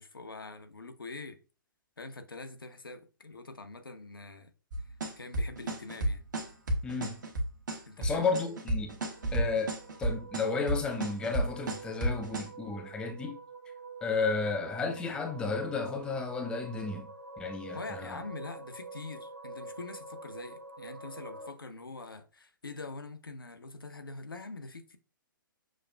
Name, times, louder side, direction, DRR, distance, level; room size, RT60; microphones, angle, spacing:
voice 1, 0.0-1.4 2.0-4.5 5.2-6.2 7.9-8.3 17.7-25.0, left 3 dB, 85° left, 0.6 m, -44 dB
sound 1, 4.7-12.5, right 1 dB, 60° right, 1.0 m, -31 dB
voice 2, 6.8-7.2 8.0-9.0 9.3-13.4 14.0-17.1 17.4-18.2, left 4 dB, 10° left, 0.4 m, -33 dB
sound 2, 9.0-21.5, right 3 dB, 90° right, 0.7 m, -47 dB
6.1 x 2.4 x 2.2 m
figure-of-eight pair, 125°, 11 cm